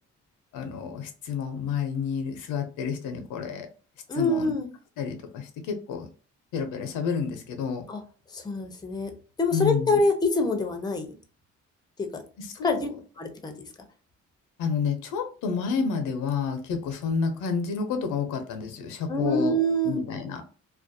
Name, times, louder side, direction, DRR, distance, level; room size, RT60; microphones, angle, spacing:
voice 1, 0.5-3.7 4.1-4.5 5.0-6.1 6.5-7.8 9.5-10.0 12.4-12.8 14.6-19.5 19.8-20.4, left 6 dB, 90° left, 6 dB, 0.6 m, -30 dB
voice 2, 4.1-4.7 7.9-8.0 8.3-9.1 9.4-11.1 12.0-12.2 12.6-12.9 13.2-13.6 19.1-20.0, left 1 dB, 15° left, 5 dB, 0.5 m, -25 dB
2.4 x 2.2 x 2.6 m, 0.38 s
cardioid pair, 90°, 30 cm